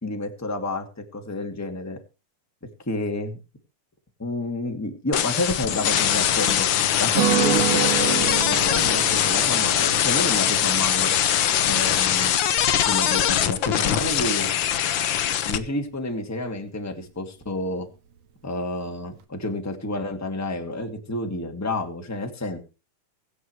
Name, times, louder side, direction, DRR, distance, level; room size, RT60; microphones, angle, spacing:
voice 1, 0.0-2.0 2.8-3.4 4.2-6.7 7.0-11.1 11.7-12.3 12.7-14.5 15.5-17.9 18.4-22.6, left 2 dB, 5° left, 4 dB, 1.7 m, -30 dB
sound 1, 5.1-15.6, left 10 dB, 75° left, 1.1 m, -22 dB
Guitar, 7.1-13.0, right 10 dB, 60° right, 2.6 m, -29 dB
23.5 x 8.0 x 3.2 m, 0.31 s
omnidirectional pair, 3.5 m